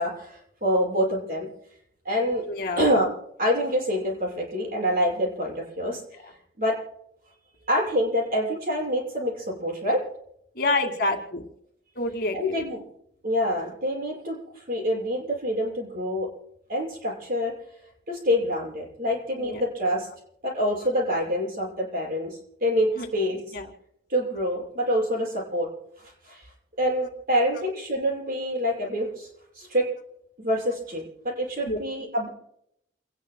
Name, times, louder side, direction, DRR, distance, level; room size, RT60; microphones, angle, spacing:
voice 1, 0.0-1.5 2.0-2.4 2.8-3.1 3.4-6.0 6.6-6.7 7.7-10.0 12.3-12.8 13.2-16.3 16.7-17.5 18.1-20.1 20.4-23.4 24.1-25.7 26.0-26.4 26.8-29.3 29.5-29.9 30.4-32.3, equal, 50° right, -2 dB, 6.6 m, -26 dB
voice 2, 2.5-2.8 10.6-11.4 11.9-12.4 19.4-19.7 23.0-23.1 23.5-23.7 31.6-31.8, left 2 dB, 55° left, 3 dB, 2.2 m, -27 dB
29.0 x 19.0 x 2.3 m, 0.74 s
head